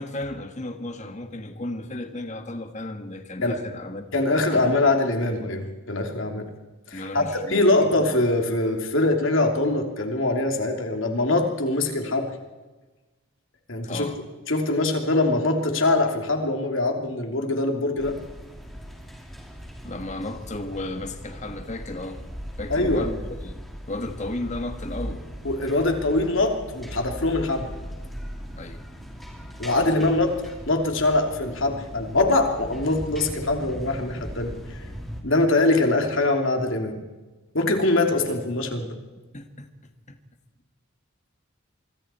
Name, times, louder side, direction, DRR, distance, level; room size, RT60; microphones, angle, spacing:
voice 1, 0.0-4.8 6.9-7.9 13.8-14.2 19.8-22.2 22.6-23.6 23.9-25.3 28.6-28.8 29.8-30.1 39.3-39.7 40.1-40.2, left 2 dB, 30° left, 7 dB, 1.7 m, -34 dB
voice 2, 4.1-6.5 6.9-12.3 13.7-14.1 14.5-18.2 22.7-23.1 25.4-27.7 29.6-30.3 30.7-34.8 35.2-37.0 37.5-39.0, left 2 dB, 65° left, 4 dB, 3.0 m, -23 dB
sound 1, 18.0-35.2, equal, ahead, 3.0 m, -38 dB
25.0 x 25.0 x 4.5 m, 1.2 s
head